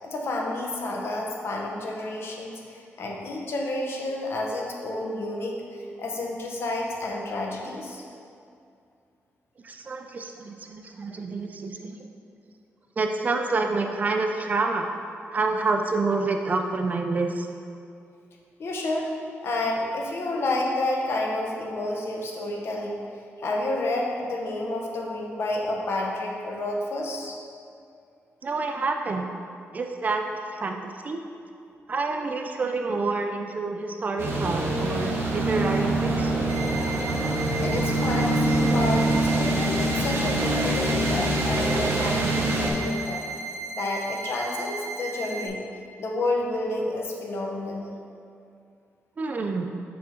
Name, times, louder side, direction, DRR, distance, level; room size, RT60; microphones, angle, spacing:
voice 1, 0.0-8.0 18.6-19.1 19.4-23.0 23.4-27.4 37.6-43.2 43.7-45.6 46.0-47.9, left 2 dB, 55° left, 0 dB, 0.8 m, -30 dB
voice 2, 9.6-12.0 13.0-14.9 15.3-17.5 28.4-29.3 29.7-30.3 30.5-31.2 31.9-36.5 49.2-49.7, right 3 dB, 35° right, 4 dB, 0.3 m, -28 dB
sound 1, 34.2-42.7, right 1 dB, 55° right, 1.0 m, -24 dB
sound 2, 36.5-45.5, right 4 dB, 75° right, 0.7 m, -36 dB
6.2 x 3.6 x 4.3 m, 2.5 s
wide cardioid pair, 165°, 5 cm